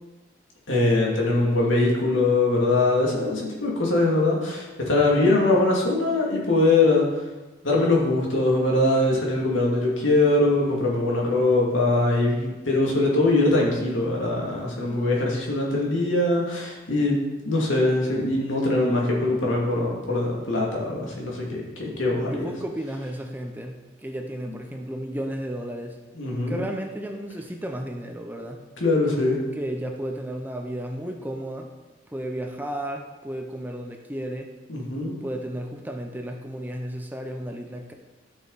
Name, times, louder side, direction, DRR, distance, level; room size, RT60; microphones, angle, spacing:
voice 1, 0.7-7.1 7.6-17.2 17.4-22.5 26.1-26.7 28.8-29.4 34.7-35.1, left 2 dB, 85° left, -2 dB, 2.5 m, -22 dB
voice 2, 22.3-26.0 26.5-28.6 29.5-31.7 32.1-34.5 35.2-37.9, right 1 dB, 10° right, 3 dB, 0.7 m, -33 dB
12.5 x 6.5 x 4.1 m, 1.1 s
head